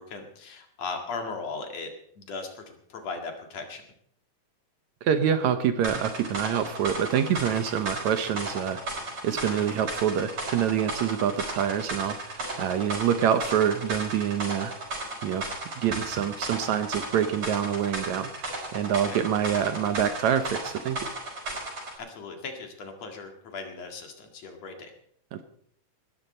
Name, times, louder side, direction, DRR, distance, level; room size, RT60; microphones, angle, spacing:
voice 1, 0.0-1.9 2.2-3.8 9.5-9.6 19.1-19.2 22.1-24.9, left 4 dB, 55° left, 4 dB, 3.0 m, -38 dB
voice 2, 5.0-14.7 15.2-15.5 15.8-21.0 25.3-25.4, right 9 dB, 70° right, 9 dB, 2.1 m, -26 dB
sound 1, 5.8-22.0, right 2 dB, 50° right, 6.6 m, -35 dB
19.5 x 13.5 x 4.3 m, 0.63 s
omnidirectional pair, 3.7 m